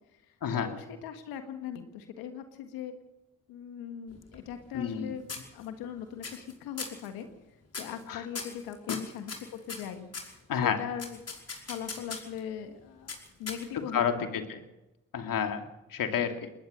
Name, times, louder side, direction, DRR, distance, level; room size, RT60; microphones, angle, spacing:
voice 1, 0.1-2.9 3.5-5.3 5.5-7.3 7.8-11.2 11.7-13.1 13.4-14.5, left 9 dB, 85° left, 7 dB, 1.7 m, -40 dB
sound 1, 4.1-5.0 5.3-5.9 6.2-6.5 6.8-7.1 7.7-8.0 8.3-10.3 11.0-12.4 13.1-13.9, left 4 dB, 45° left, 5.4 m, -40 dB
voice 2, 4.7-5.1 8.1-8.2 8.9-9.0 10.5-10.8 13.9-14.6 15.1-15.6 15.9-16.5, left 7 dB, 65° left, 6 dB, 2.6 m, -29 dB
21.0 x 19.5 x 6.7 m, 0.95 s
hypercardioid pair, 45°, 35 cm